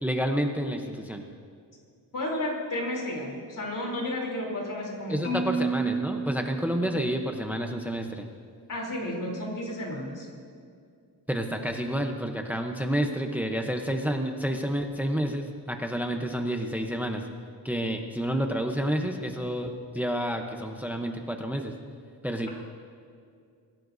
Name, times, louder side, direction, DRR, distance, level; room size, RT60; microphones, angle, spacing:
voice 1, 0.0-1.2 5.1-8.3 11.3-17.2 17.6-21.7 22.2-22.5, equal, 5° right, 4 dB, 0.8 m, -29 dB
voice 2, 2.1-5.4 8.7-10.3, left 1 dB, 55° left, -1 dB, 3.4 m, -32 dB
Marimba xylophone, 5.2-7.4, right 3 dB, 35° left, 3.5 m, -31 dB
23.5 x 16.5 x 2.7 m, 2.3 s
wide cardioid pair, 160°, 38 cm